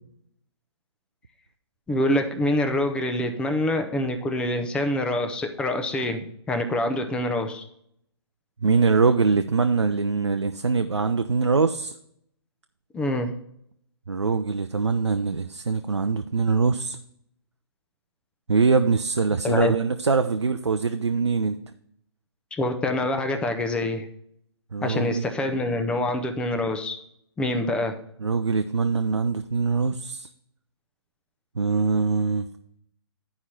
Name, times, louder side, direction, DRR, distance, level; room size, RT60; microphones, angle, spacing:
voice 1, 1.9-7.6 12.9-13.3 19.4-19.7 22.6-24.1 24.8-27.0 27.4-28.0, left 1 dB, 5° left, 6 dB, 0.6 m, -25 dB
voice 2, 8.6-11.9 14.1-17.0 18.5-21.6 24.7-25.2 28.2-30.3 31.6-32.5, right 4 dB, 85° right, 7 dB, 0.5 m, -23 dB
11.0 x 4.8 x 4.2 m, 0.72 s
figure-of-eight pair, 130°, 14 cm